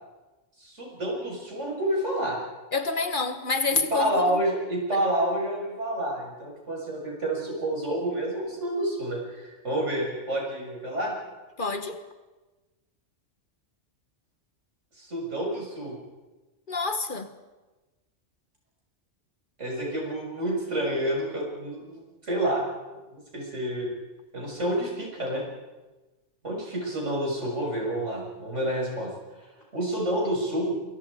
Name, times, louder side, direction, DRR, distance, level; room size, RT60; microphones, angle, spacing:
voice 1, 0.6-2.4 3.7-11.1 14.9-16.0 19.6-22.7 23.1-23.9 24.3-25.4 26.4-29.1 29.7-30.7, right 1 dB, 85° right, 6.8 m, -29 dB
voice 2, 2.7-4.4 11.6-12.0 16.7-17.3, left 4 dB, 45° left, 1.4 m, -28 dB
27.0 x 23.0 x 5.1 m
omnidirectional pair, 1.2 m